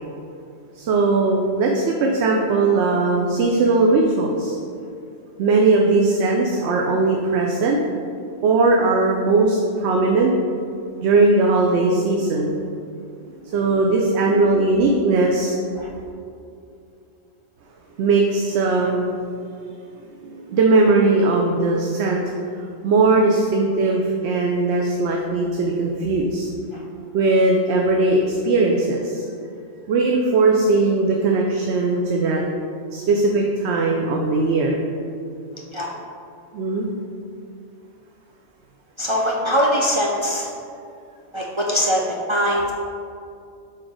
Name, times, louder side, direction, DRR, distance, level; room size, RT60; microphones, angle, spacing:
voice 1, 0.8-4.6 5.4-7.8 8.4-10.3 11.0-12.6 13.5-15.5 18.0-19.1 20.3-22.2 22.8-26.5 27.1-29.2 29.9-32.4 32.9-34.8 36.5-36.9, right 3 dB, 75° right, 0 dB, 0.8 m, -19 dB
voice 2, 39.0-40.5 41.3-42.7, equal, 50° right, -3 dB, 0.3 m, -22 dB
4.5 x 4.3 x 4.8 m, 2.5 s
omnidirectional pair, 1.2 m